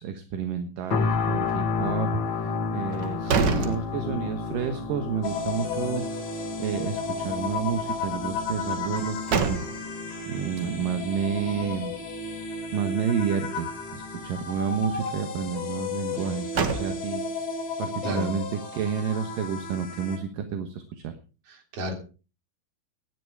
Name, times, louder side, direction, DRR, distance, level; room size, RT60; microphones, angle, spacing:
voice 1, 0.0-6.3 6.6-9.6 10.3-11.9 12.7-17.2 17.8-18.4 18.7-21.1, right 7 dB, 70° right, 7 dB, 2.8 m, -30 dB
sound 1, 0.9-15.9 16.4-16.6, left 4 dB, 45° left, 1.7 m, -33 dB
sound 2, 2.9-4.5 4.9-5.0 8.8-10.1 16.1-17.4, right 5 dB, 90° right, 0.9 m, -29 dB
voice 2, 3.2-3.8 18.0-18.3 21.5-21.9, left 1 dB, 40° right, 3 dB, 4.3 m, -32 dB
sound 3, 5.2-20.2, left 4 dB, 90° left, 5.3 m, -34 dB
17.5 x 10.5 x 4.8 m, 0.35 s
omnidirectional pair, 4.3 m